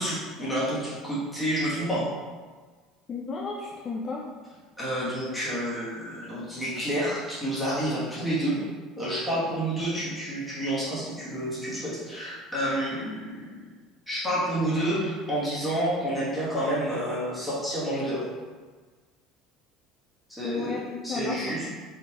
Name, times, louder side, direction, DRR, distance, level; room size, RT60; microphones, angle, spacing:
voice 1, 0.0-2.1 4.8-8.6 9.0-13.5 14.1-18.2 20.4-20.8 21.0-21.6, right 1 dB, 5° left, -9 dB, 1.3 m, -29 dB
voice 2, 3.1-4.3 20.4-20.8 21.1-21.7, left 4 dB, 25° left, -1 dB, 0.3 m, -33 dB
4.0 x 3.8 x 2.9 m, 1.4 s
cardioid pair, 170°, 0 cm